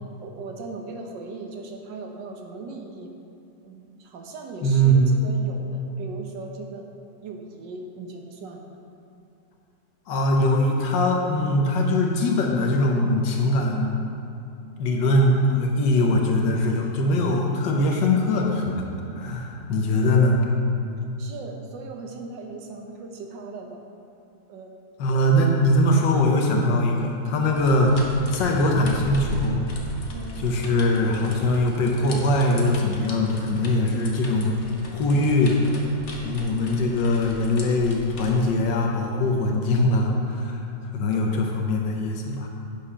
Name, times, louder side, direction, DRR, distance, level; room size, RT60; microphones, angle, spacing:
voice 1, 0.2-3.1 3.6-5.0 5.2-6.9 7.2-8.7 15.0-15.1 19.9-20.0 21.2-23.8 24.5-24.7 30.1-30.3, right 3 dB, 85° right, 2 dB, 1.6 m, -38 dB
voice 2, 4.6-5.2 10.1-14.0 14.8-18.7 19.1-20.4 25.0-29.6 30.4-34.5 34.9-35.6 36.2-42.5, left 1 dB, 85° left, 0 dB, 1.6 m, -21 dB
sound 1, 27.5-38.5, left 1 dB, 45° left, 1.2 m, -37 dB
8.8 x 5.2 x 5.6 m, 2.7 s
omnidirectional pair, 1.9 m